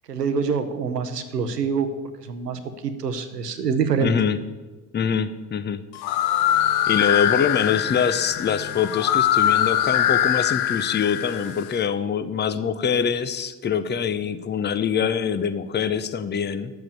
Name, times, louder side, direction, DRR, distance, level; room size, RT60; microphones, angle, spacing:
voice 1, 0.1-1.9 2.2-4.1, right 6 dB, 85° right, 10 dB, 0.9 m, -25 dB
voice 2, 4.0-4.4 4.9-5.8 6.9-16.7, left 7 dB, 20° left, 12 dB, 0.7 m, -24 dB
sound 1, 5.9-11.7, left 11 dB, 55° left, 0.8 m, -22 dB
10.5 x 7.5 x 6.9 m, 1.3 s
figure-of-eight pair, 55°, 46 cm